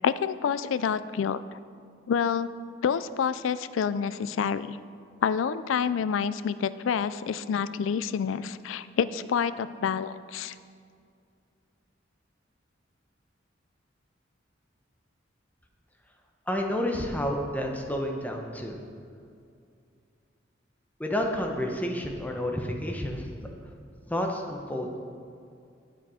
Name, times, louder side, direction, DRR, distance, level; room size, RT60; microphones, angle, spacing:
voice 1, 0.0-1.4 2.1-2.5 2.8-4.8 5.2-10.5, left 7 dB, 90° left, 15 dB, 0.4 m, -28 dB
voice 2, 16.5-18.8 21.0-23.3 24.1-25.0, left 1 dB, 10° left, 2 dB, 0.9 m, -30 dB
8.8 x 7.7 x 4.9 m, 2.4 s
head